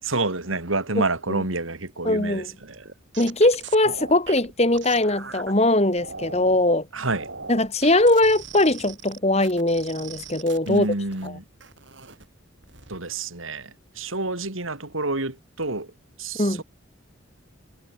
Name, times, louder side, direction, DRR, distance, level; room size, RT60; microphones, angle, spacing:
voice 1, 0.1-2.8 6.9-7.3 10.7-11.4 12.9-15.9 16.2-16.6, right 2 dB, 90° right, 3.8 m, -28 dB
voice 2, 2.0-2.5 3.2-6.8 7.5-10.9 11.2-11.3 16.4-16.6, left 1 dB, 30° left, 2.9 m, -21 dB
sound 1, 2.6-5.5 6.0-6.6 7.0-11.3 11.6-12.3 12.6-13.0, right 5 dB, 65° right, 5.1 m, -40 dB
head